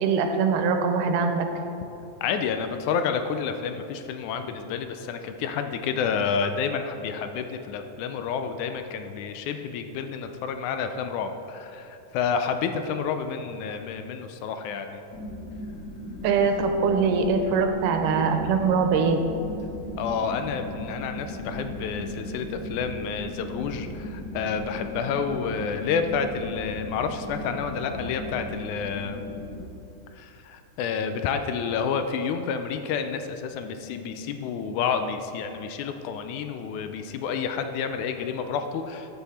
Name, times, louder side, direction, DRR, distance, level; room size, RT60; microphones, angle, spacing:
voice 1, 0.0-1.5 16.2-19.2, right 5 dB, 90° right, 5 dB, 2.4 m, -22 dB
voice 2, 2.2-15.0 20.0-29.2 30.2-39.1, left 6 dB, 80° left, 7 dB, 1.9 m, -29 dB
sound 1, 15.1-29.7, equal, 40° left, 1.2 m, -37 dB
14.0 x 5.8 x 4.2 m, 2.8 s
omnidirectional pair, 3.7 m